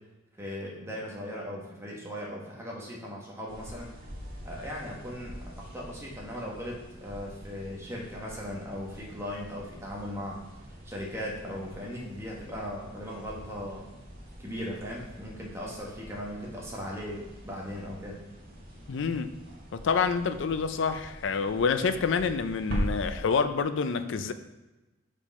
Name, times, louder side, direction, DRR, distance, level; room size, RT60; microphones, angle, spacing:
voice 1, 0.4-3.9 4.4-10.4 10.8-13.9 14.4-18.2, equal, 15° right, -3 dB, 1.4 m, -38 dB
sound 1, 3.5-23.2, equal, 50° right, 1.7 m, -43 dB
voice 2, 18.9-19.3 19.7-24.3, left 5 dB, 65° left, 11 dB, 0.4 m, -27 dB
5.5 x 5.0 x 4.1 m, 1.1 s
head